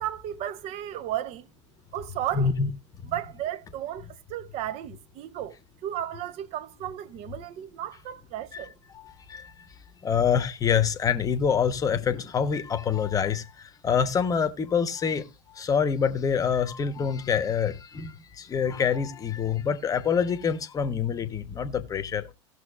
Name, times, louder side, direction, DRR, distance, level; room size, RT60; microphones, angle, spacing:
voice 1, 0.0-1.5 1.9-2.5 3.1-5.6 5.8-8.7, right 12 dB, 40° right, 0.8 m, -34 dB
voice 2, 2.3-2.7 8.5-8.7 8.9-9.5 10.0-22.3, left 7 dB, 20° left, 1.0 m, -26 dB
18.0 x 6.3 x 2.4 m
figure-of-eight pair, 90°, 16 cm